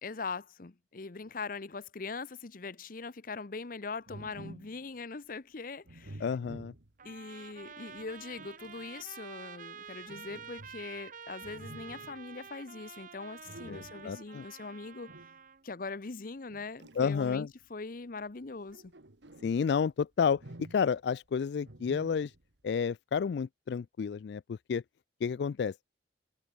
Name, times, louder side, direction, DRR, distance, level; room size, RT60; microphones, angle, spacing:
voice 1, 0.0-6.2 7.0-15.1 15.6-18.9, left 4 dB, 50° left, 0.8 m, -41 dB
sound 1, 4.1-4.8 5.9-7.2 8.0-8.9 10.1-11.0 11.4-12.2 13.4-14.2 15.1-15.4 16.5-17.6 18.5-19.7 20.2-21.1 21.7-22.5, right 1 dB, 80° right, 1.9 m, -50 dB
voice 2, 6.2-6.7 13.7-14.4 17.0-17.5 19.4-20.4 20.7-22.3 22.6-24.8 25.2-25.7, left 6 dB, 70° left, 0.3 m, -30 dB
Trumpet, 7.0-15.6, right 6 dB, 45° right, 0.8 m, -49 dB
head